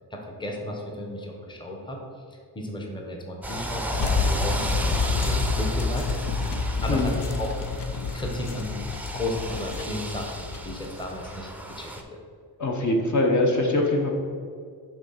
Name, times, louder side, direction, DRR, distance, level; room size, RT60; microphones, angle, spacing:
voice 1, 0.1-6.1 6.8-7.6 8.1-8.8 9.1-12.2, left 1 dB, 10° left, 0 dB, 0.8 m, -34 dB
sound 1, 3.4-12.0, right 1 dB, 5° right, 0.4 m, -35 dB
sound 2, 3.9-11.5, left 4 dB, 90° left, 0.7 m, -28 dB
voice 2, 6.9-7.2 12.6-14.1, left 2 dB, 45° left, 1 dB, 0.8 m, -23 dB
6.0 x 3.7 x 5.6 m, 2.2 s
wide cardioid pair, 145°, 40 cm